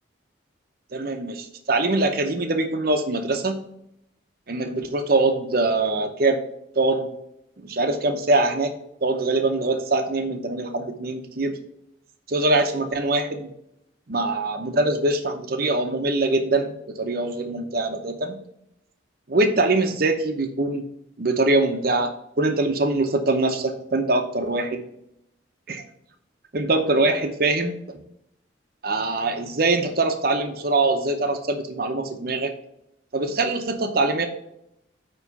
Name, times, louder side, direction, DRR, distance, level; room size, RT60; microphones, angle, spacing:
voice 1, 0.9-3.7 4.5-6.4 6.8-7.1 7.6-8.7 9.0-11.6 12.3-13.5 14.1-18.4 19.3-20.8 21.2-24.8 25.7-25.8 26.5-27.8 28.8-32.5 33.1-34.3, right 2 dB, 50° right, 5 dB, 0.7 m, -23 dB
9.2 x 3.1 x 5.7 m, 0.78 s
head